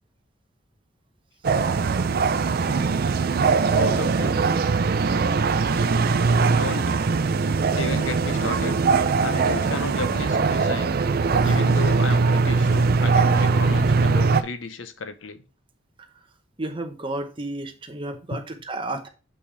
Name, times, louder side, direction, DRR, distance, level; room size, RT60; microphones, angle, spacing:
sound 1, 1.4-14.4, right 4 dB, 50° right, 0.4 m, -21 dB
voice 1, 3.7-4.4 6.4-6.9 7.7-8.8 9.2-11.0 11.4-15.4 18.3-18.4, left 3 dB, 80° left, 0.8 m, -33 dB
voice 2, 16.6-19.1, right 2 dB, 25° right, 0.9 m, -32 dB
6.6 x 5.6 x 3.3 m
head